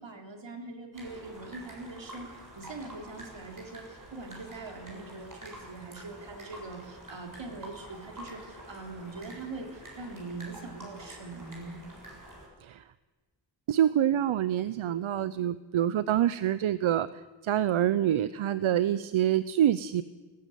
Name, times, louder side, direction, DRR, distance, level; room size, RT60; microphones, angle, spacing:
voice 1, 0.0-11.8, right 3 dB, 70° right, 4 dB, 3.5 m, -42 dB
sound 1, 0.9-12.5, right 1 dB, 40° right, 6.9 m, -47 dB
voice 2, 13.7-17.1 17.4-20.0, right 11 dB, 90° right, 16 dB, 0.7 m, -26 dB
18.5 x 15.0 x 9.3 m, 1.3 s
wide cardioid pair, 65°, 47 cm